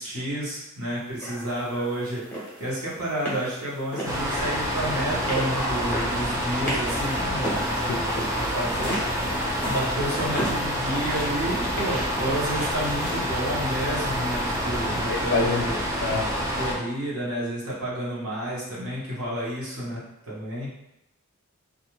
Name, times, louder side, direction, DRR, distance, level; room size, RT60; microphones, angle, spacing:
voice 1, 0.0-9.2 9.6-15.8 16.5-20.7, right 1 dB, 70° right, -7 dB, 1.0 m, -30 dB
sound 1, 1.2-15.3, equal, 10° left, 0.8 m, -36 dB
sound 2, 4.0-16.7, equal, 15° right, 0.4 m, -28 dB
voice 2, 15.1-15.6 16.0-16.3, left 4 dB, 50° left, 2 dB, 0.3 m, -25 dB
2.4 x 2.2 x 2.9 m, 0.87 s
head